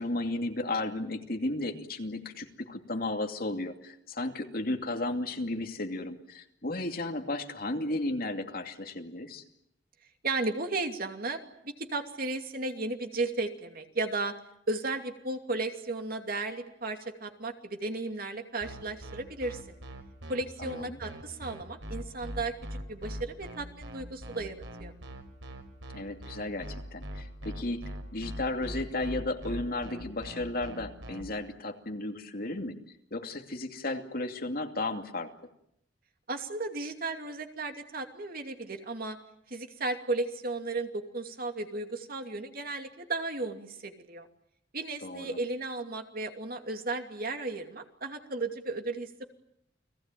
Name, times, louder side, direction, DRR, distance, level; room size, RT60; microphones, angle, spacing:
voice 1, 0.0-9.4 20.6-21.0 25.9-27.8 28.1-32.7 33.1-35.3 45.0-45.4, left 2 dB, 50° left, 4 dB, 2.6 m, -34 dB
voice 2, 10.2-14.3 14.7-19.8 20.3-24.9 36.3-39.2 39.5-44.3 44.7-49.2, right 3 dB, 50° right, 5 dB, 2.7 m, -35 dB
sound 1, 18.6-31.2, equal, 90° right, 5.6 m, -41 dB
30.0 x 19.5 x 9.2 m, 0.77 s
head